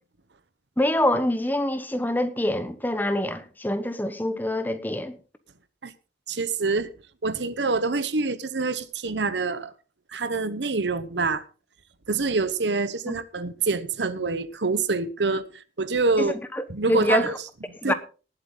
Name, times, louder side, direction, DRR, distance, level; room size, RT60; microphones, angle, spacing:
voice 1, 0.8-5.2 13.1-13.2 16.2-17.3 17.8-17.9, left 1 dB, 10° left, 1.0 m, -25 dB
voice 2, 6.3-6.9 7.2-9.7 10.1-11.4 12.1-15.5 15.8-16.4 16.7-17.3 17.8-17.9, right 3 dB, 80° right, 1.0 m, -26 dB
19.0 x 8.1 x 3.9 m
head